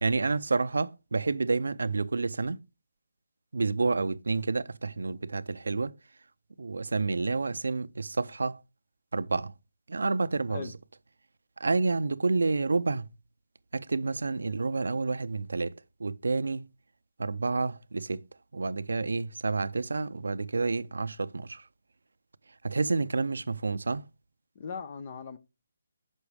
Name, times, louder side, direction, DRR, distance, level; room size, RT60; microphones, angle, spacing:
voice 1, 0.0-2.6 3.5-5.9 6.6-8.6 9.1-9.5 9.9-10.7 11.6-13.1 13.7-15.7 16.0-16.6 17.2-18.2 18.5-21.6 22.6-24.0, right 3 dB, 80° right, 0.6 m, -29 dB
voice 2, 24.5-25.4, left 6 dB, 40° left, 0.8 m, -39 dB
9.7 x 6.1 x 3.5 m
hypercardioid pair, 160°, 0 cm